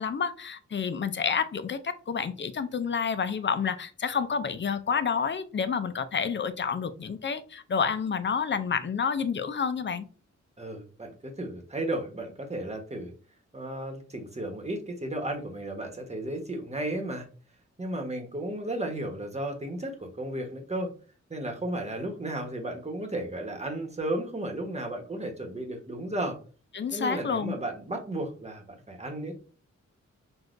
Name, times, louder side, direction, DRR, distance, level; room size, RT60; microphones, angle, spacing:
voice 1, 0.0-10.0 26.7-27.5, left 6 dB, 40° left, 0.5 m, -29 dB
voice 2, 10.6-13.1 13.5-17.3 17.8-20.9 21.3-26.4 26.9-29.3, right 1 dB, 20° right, 1.1 m, -34 dB
6.2 x 2.4 x 2.5 m
wide cardioid pair, 95°, 29 cm